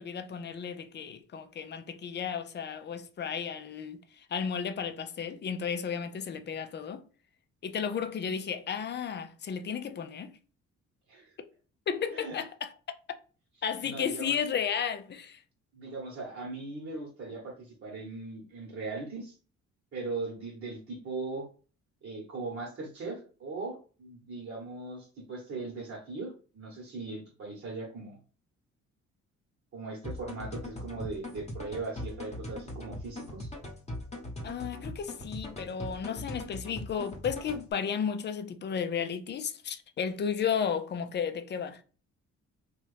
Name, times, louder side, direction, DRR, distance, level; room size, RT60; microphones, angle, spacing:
voice 1, 0.0-4.0 4.3-7.0 7.6-10.3 11.9-12.7 13.6-15.4 34.4-41.8, left 7 dB, 35° left, 0.5 m, -33 dB
voice 2, 13.8-14.4 15.7-19.4 19.9-21.5 22.0-28.2 29.7-33.5, right 3 dB, 50° right, 1.1 m, -39 dB
sound 1, 30.0-37.7, left 1 dB, 20° left, 1.0 m, -41 dB
2.9 x 2.4 x 3.2 m
cardioid pair, 90°, 30 cm